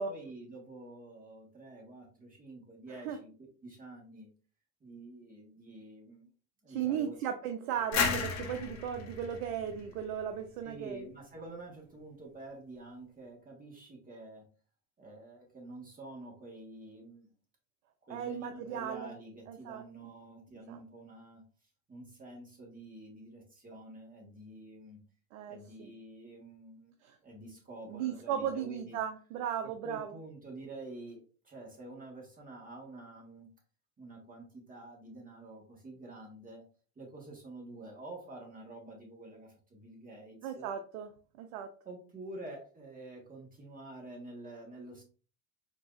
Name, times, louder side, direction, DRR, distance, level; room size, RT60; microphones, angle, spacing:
voice 1, 0.1-4.3 4.8-6.3 6.6-7.2 7.9-8.1 10.6-14.4 15.0-17.3 18.0-21.4 21.9-25.0 25.5-26.9 27.2-29.0 29.6-33.5 34.0-36.6 36.9-40.7 41.8-45.0, right 2 dB, 20° right, -2 dB, 1.6 m, -48 dB
voice 2, 6.7-11.1 18.1-19.1 19.5-19.8 20.7-20.8 25.3-25.9 27.0-27.2 27.9-30.1 40.4-41.1 41.4-41.7, right 9 dB, 80° right, 6 dB, 0.7 m, -36 dB
sound 1, 7.9-10.6, left 5 dB, 45° left, 1.3 m, -34 dB
4.7 x 2.8 x 2.5 m, 0.38 s
supercardioid pair, 95°, 40 cm